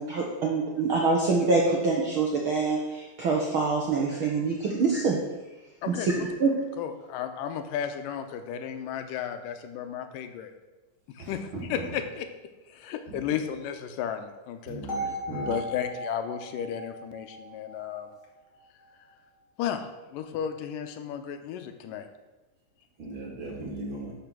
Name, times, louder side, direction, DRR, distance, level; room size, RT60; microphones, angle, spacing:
voice 1, 0.0-5.2 5.9-6.6, right 4 dB, 60° right, -2 dB, 1.4 m, -25 dB
voice 2, 5.8-6.3 6.8-10.5 11.1-12.3 12.7-14.8 15.5-18.1 19.6-22.1, left 8 dB, 90° left, 8 dB, 2.4 m, -34 dB
voice 3, 11.2-11.6 13.1-13.3 14.6-15.6 23.0-24.1, right 2 dB, 45° right, -1 dB, 2.3 m, -38 dB
sound 1, 14.9-18.9, right 1 dB, 25° left, 2.3 m, -37 dB
12.0 x 5.5 x 6.1 m, 1.1 s
omnidirectional pair, 3.8 m